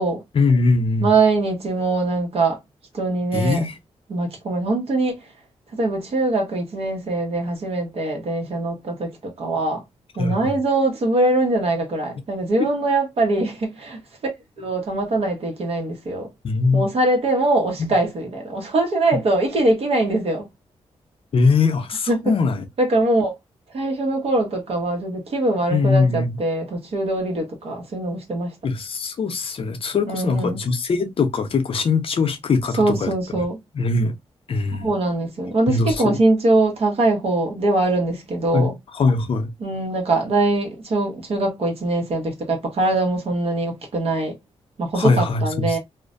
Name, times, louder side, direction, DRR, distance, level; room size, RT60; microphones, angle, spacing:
voice 1, 0.3-1.1 3.3-3.7 10.2-10.5 16.4-16.9 17.8-17.9 21.3-22.6 25.7-26.4 28.6-33.4 33.7-34.1 34.5-34.9 35.7-36.2 38.5-39.5 45.0-45.8, left 4 dB, 55° left, 0.6 m, -21 dB
voice 2, 1.0-2.6 2.9-3.6 4.1-5.2 5.8-9.8 10.2-14.0 14.6-16.3 16.7-20.5 22.1-22.4 22.8-23.3 23.7-28.5 30.1-30.6 32.8-33.6 34.7-38.7 39.6-44.3 44.8-45.8, right 2 dB, 60° right, 1.0 m, -22 dB
2.4 x 2.1 x 2.5 m
cardioid pair, 75°, 11 cm